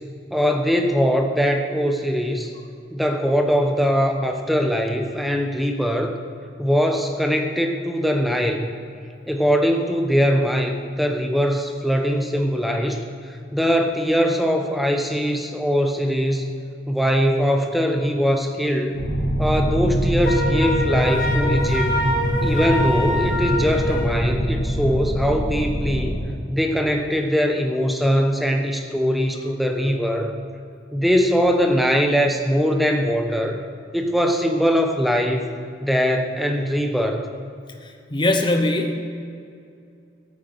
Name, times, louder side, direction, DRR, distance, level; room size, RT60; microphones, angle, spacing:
voice 1, 0.3-2.5 2.9-6.2 6.6-8.7 9.3-16.5 16.9-19.0 19.4-21.9 22.4-26.2 26.5-30.3 30.9-33.6 33.9-37.3, equal, ahead, 4 dB, 0.9 m, -21 dB
sound 1, 18.9-26.2, equal, 70° left, 3.4 m, -23 dB
Wind instrument woodwind instrument, 20.2-24.2, left 1 dB, 45° left, 1.6 m, -25 dB
voice 2, 38.1-39.0, left 1 dB, 25° left, 4 dB, 0.9 m, -20 dB
13.0 x 9.9 x 6.7 m, 2.4 s
head